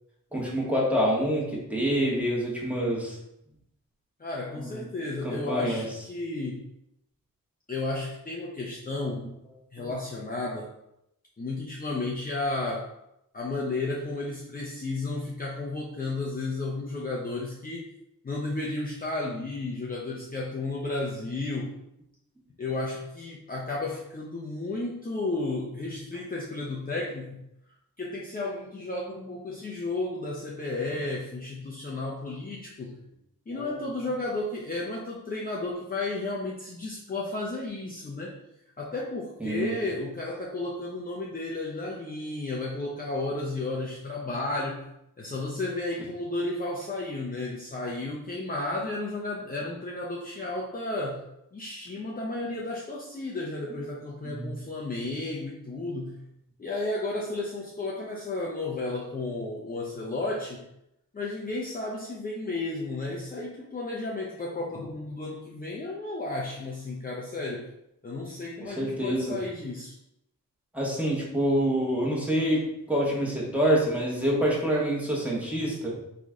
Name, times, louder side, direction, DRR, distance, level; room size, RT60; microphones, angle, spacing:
voice 1, 0.3-3.2 4.6-4.9 5.2-5.8 9.8-9.9 33.5-33.8 39.4-39.7 54.2-54.5 68.6-69.4 70.7-76.0, equal, 5° right, -4 dB, 1.5 m, -27 dB
voice 2, 4.2-6.6 7.7-9.3 9.7-10.7 11.4-12.9 13.3-17.9 18.2-21.8 22.6-27.4 28.0-33.0 33.5-38.4 38.8-44.9 45.2-51.3 51.5-56.2 56.6-60.7 61.1-67.7 68.0-70.0, left 2 dB, 25° left, -3 dB, 0.7 m, -33 dB
3.9 x 3.2 x 3.7 m, 0.82 s
cardioid pair, 85°, 35 cm